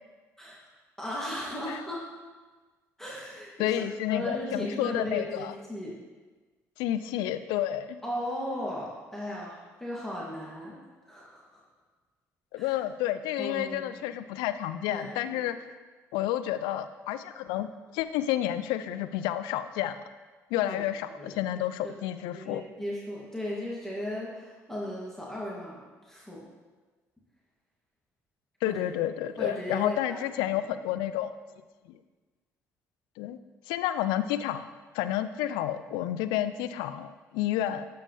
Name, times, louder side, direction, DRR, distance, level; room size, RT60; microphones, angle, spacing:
voice 1, 1.0-2.2 3.0-3.8 4.1-5.9 8.0-10.8 11.0-11.6 12.6-12.7 13.4-14.1 14.9-15.4 20.7-20.8 21.1-21.4 21.8-26.5 28.6-28.9 29.4-30.0 30.4-30.7, left 1 dB, 5° left, -6 dB, 2.5 m, -36 dB
voice 2, 3.6-5.5 6.8-8.0 12.5-15.6 16.1-17.7 17.9-20.0 20.5-22.6 28.6-31.3 33.2-33.4 33.7-34.7 34.9-37.9, left 12 dB, 75° left, 12 dB, 0.4 m, -30 dB
12.0 x 5.1 x 3.3 m, 1.3 s
hypercardioid pair, 55°, 8 cm